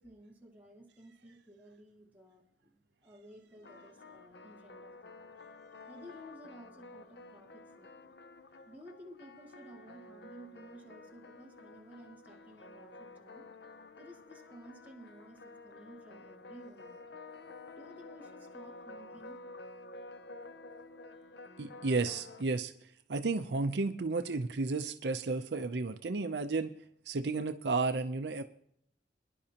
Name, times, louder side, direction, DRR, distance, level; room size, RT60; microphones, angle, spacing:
voice 1, 0.0-5.2 5.9-8.1 8.7-13.5 14.0-17.0 17.8-19.4, equal, 10° right, -3 dB, 2.1 m, -54 dB
sound 1, 3.6-22.4, left 2 dB, 60° left, 0.7 m, -51 dB
voice 2, 21.6-26.7 27.1-28.4, right 3 dB, 65° right, 8 dB, 0.6 m, -33 dB
23.5 x 11.0 x 2.9 m, 0.69 s
head